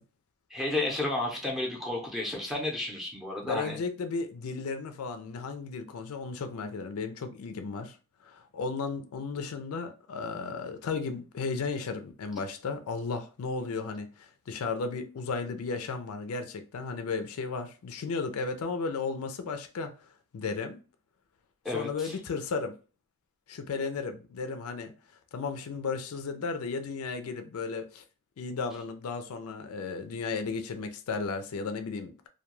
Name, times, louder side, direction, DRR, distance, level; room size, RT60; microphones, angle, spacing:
voice 1, 0.5-3.8 21.6-22.1, left 2 dB, ahead, 0.6 m, -32 dB
voice 2, 3.4-8.0 8.2-19.9 20.3-20.8 21.7-22.7 23.5-24.9 25.3-28.0 28.4-32.3, left 4 dB, 75° left, 0.4 m, -34 dB
2.2 x 2.2 x 3.0 m
head